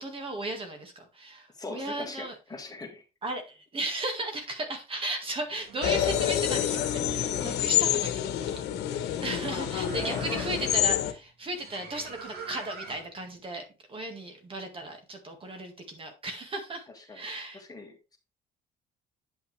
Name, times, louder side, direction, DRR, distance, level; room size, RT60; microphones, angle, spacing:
voice 1, 0.0-2.4 3.2-8.6 8.9-16.9 17.1-17.6, right 2 dB, 30° right, 4 dB, 1.9 m, -36 dB
voice 2, 1.5-3.0 9.9-10.6 16.9-17.3 17.5-18.2, left 3 dB, 20° left, 3 dB, 2.1 m, -41 dB
sound 1, 5.4-13.3, right 5 dB, 65° right, 2.3 m, -46 dB
sound 2, 5.8-11.1, left 11 dB, 80° left, 1.1 m, -27 dB
9.4 x 5.8 x 3.3 m, 0.29 s
cardioid pair, 110°, 17 cm